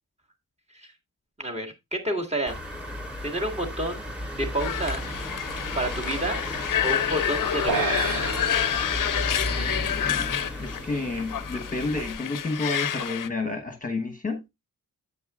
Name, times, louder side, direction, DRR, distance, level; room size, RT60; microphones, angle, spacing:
voice 1, 1.4-2.6 3.2-4.0 4.3-5.1 5.7-6.4 6.8-8.3 9.5-10.1, right 1 dB, 15° right, 1.8 m, -30 dB
sound 1, 2.5-12.1, equal, ahead, 3.1 m, -34 dB
sound 2, 4.6-13.3, left 10 dB, 60° left, 0.6 m, -29 dB
sound 3, 7.7-10.2, right 8 dB, 65° right, 0.8 m, -32 dB
voice 2, 9.5-14.4, left 3 dB, 20° left, 1.1 m, -31 dB
9.2 x 7.9 x 2.4 m
wide cardioid pair, 145°, 37 cm